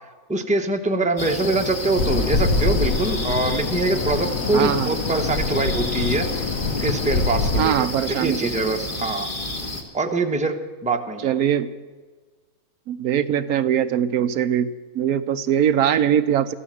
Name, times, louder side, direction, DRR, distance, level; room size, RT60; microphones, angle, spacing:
voice 1, 0.3-9.3 9.9-10.5 10.8-11.3, right 2 dB, 5° right, 4 dB, 0.9 m, -24 dB
sound 1, 1.2-9.8, left 2 dB, 35° left, 1.9 m, -30 dB
sound 2, 2.0-7.7, left 3 dB, 60° left, 1.4 m, -25 dB
voice 2, 4.5-4.9 7.6-8.4 11.2-11.7 12.9-16.5, right 9 dB, 75° right, 11 dB, 1.1 m, -21 dB
15.0 x 13.0 x 7.6 m, 1.4 s
omnidirectional pair, 1.6 m